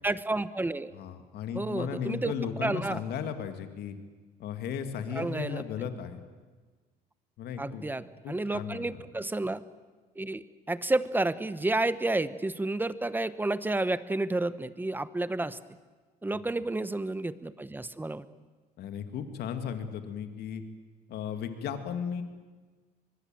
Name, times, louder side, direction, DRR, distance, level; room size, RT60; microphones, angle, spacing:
voice 1, 0.0-0.9 1.5-2.3 2.6-3.0 5.1-5.9 7.6-9.6 10.2-15.6 16.2-18.2, right 2 dB, 10° right, 15 dB, 1.0 m, -31 dB
voice 2, 0.9-4.0 4.4-6.2 7.4-7.9 8.2-9.0 18.8-20.6 21.1-22.2, left 7 dB, 70° left, 8 dB, 2.4 m, -35 dB
24.0 x 21.5 x 7.7 m, 1.4 s
cardioid pair, 110°, 17 cm